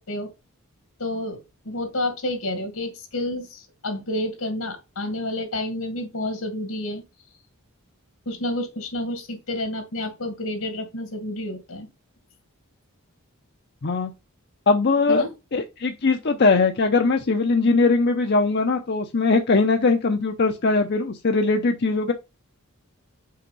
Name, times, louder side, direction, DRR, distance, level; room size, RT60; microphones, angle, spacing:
voice 1, 1.0-7.0 8.3-11.9 15.1-15.3, left 1 dB, 80° left, 2.3 m, -29 dB
voice 2, 14.7-15.2 15.5-22.1, left 3 dB, 50° left, 0.6 m, -20 dB
5.6 x 4.3 x 5.3 m
head